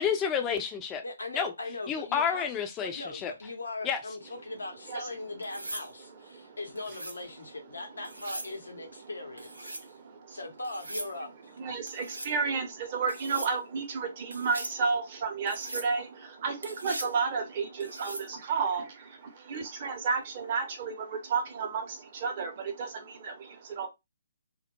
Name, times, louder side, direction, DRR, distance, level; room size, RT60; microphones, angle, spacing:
voice 1, 0.0-1.0 1.3-1.5 1.9-3.3 3.8-4.0, left 7 dB, 15° left, 0.5 m, -29 dB
voice 2, 1.0-2.5 2.8-9.7 10.3-11.5, left 2 dB, 70° left, 0.8 m, -39 dB
sound 1, 5.4-5.9 6.8-7.2 8.0-8.5 9.4-9.9 10.6-11.1 11.9-12.3 13.1-13.5 14.3-14.8 15.5-15.9 16.6-17.2 17.8-18.3 20.2-20.5, right 1 dB, 80° right, 0.5 m, -40 dB
voice 3, 6.0-6.6 7.4-7.5 7.9-8.1 8.4-9.1 9.6-10.4 11.6-23.9, right 5 dB, 35° right, 0.7 m, -33 dB
2.2 x 2.0 x 2.9 m
figure-of-eight pair, 135°, 0 cm